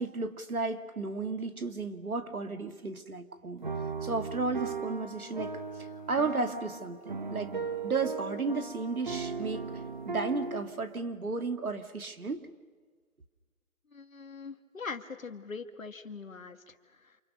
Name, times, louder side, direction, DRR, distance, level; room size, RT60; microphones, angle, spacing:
voice 1, 0.0-3.6 4.0-9.7 10.0-12.4, right 4 dB, 85° right, 8 dB, 2.3 m, -34 dB
sound 1, 3.6-11.0, right 4 dB, 35° right, 1.8 m, -37 dB
voice 2, 13.9-16.7, left 4 dB, 70° left, 8 dB, 2.1 m, -42 dB
29.5 x 28.0 x 6.7 m, 1.5 s
figure-of-eight pair, 170°, 42 cm